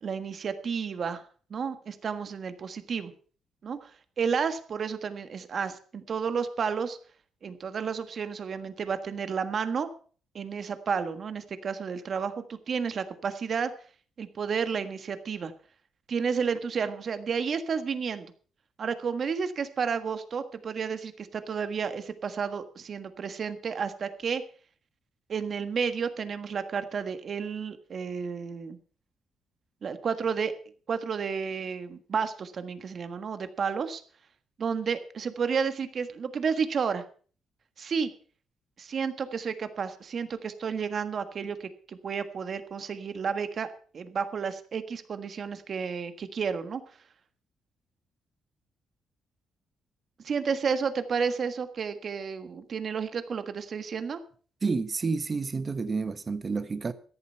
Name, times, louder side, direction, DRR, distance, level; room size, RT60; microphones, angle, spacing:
voice 1, 0.0-1.2 1.5-3.1 3.6-3.9 4.2-7.0 7.4-9.9 10.3-13.7 14.2-15.5 16.1-18.3 18.8-24.4 25.3-28.8 29.8-30.5 30.9-34.0 34.6-37.0 37.8-38.1 38.8-43.7 43.9-46.8 50.2-54.2, right 6 dB, 50° right, 1.5 m, -31 dB
voice 2, 54.6-56.9, right 4 dB, 30° right, 1.1 m, -29 dB
13.5 x 11.0 x 5.6 m
cardioid pair, 100°, 0 cm